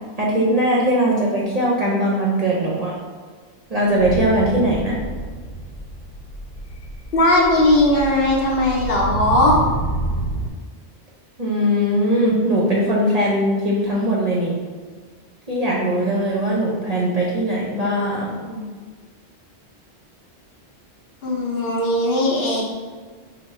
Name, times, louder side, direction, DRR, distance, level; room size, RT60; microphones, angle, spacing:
voice 1, 0.2-2.9 3.7-5.0 11.4-14.5 15.5-18.6, right 1 dB, 45° right, -5 dB, 0.5 m, -20 dB
sound 1, 3.9-10.5, right 2 dB, 80° left, 1.1 m, -29 dB
voice 2, 7.1-9.6 21.2-22.6, left 1 dB, 60° left, -2 dB, 0.8 m, -18 dB
3.6 x 2.1 x 4.2 m, 1.5 s
omnidirectional pair, 1.2 m